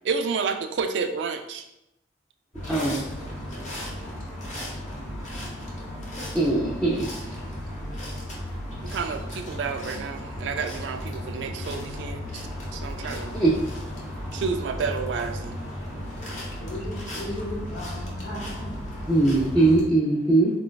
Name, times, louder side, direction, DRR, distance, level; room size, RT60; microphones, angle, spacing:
voice 1, 0.0-1.6 8.8-12.4 12.7-13.3 14.3-15.5, right 5 dB, 75° right, 7 dB, 0.3 m, -30 dB
sound 1, 2.5-19.8, left 1 dB, 40° left, 0.7 m, -35 dB
voice 2, 2.7-3.0 6.3-7.1 13.4-13.5 19.1-20.5, right 2 dB, 5° left, -7 dB, 0.4 m, -20 dB
voice 3, 16.6-19.0, left 1 dB, 75° left, -7 dB, 0.7 m, -36 dB
3.9 x 2.2 x 2.2 m, 0.87 s
head